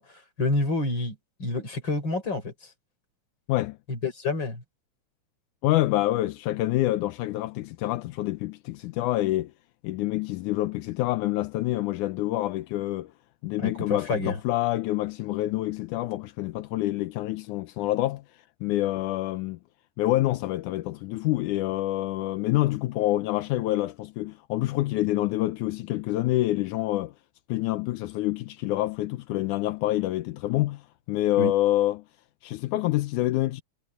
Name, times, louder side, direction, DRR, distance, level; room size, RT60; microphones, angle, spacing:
voice 1, 0.0-2.5 3.9-4.6 13.6-14.4 31.4-31.5, left 2 dB, 35° left, 5.8 m, -28 dB
voice 2, 5.6-9.5 9.8-13.1 13.4-18.2 18.6-19.6 20.0-27.1 27.5-30.8 31.1-32.0 32.4-33.6, left 16 dB, 85° left, 2.3 m, -27 dB
omnidirectional pair, 3.5 m